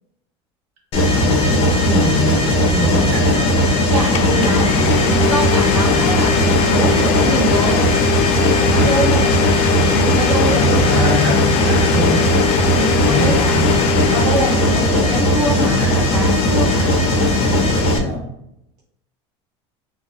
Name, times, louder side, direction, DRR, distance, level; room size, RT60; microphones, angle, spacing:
Mechanisms, 0.9-18.0, left 1 dB, 45° left, 0.8 m, -17 dB
voice 1, 1.0-3.7 4.4-4.7 8.7-9.1 10.4-12.3 13.0-13.7 15.6-16.2 18.0-18.3, left 1 dB, 65° right, -2 dB, 1.2 m, -24 dB
Domestic sounds home sounds, 3.7-3.8 4.1-15.2, left 9 dB, 60° left, 0.4 m, -22 dB
voice 2, 3.9-4.7 5.0-7.9 8.4-9.3 9.8-11.3 12.7-13.6 14.1-17.0, right 2 dB, 80° right, -5 dB, 1.0 m, -24 dB
3.9 x 2.5 x 2.6 m, 0.81 s
cardioid pair, 145°, 14 cm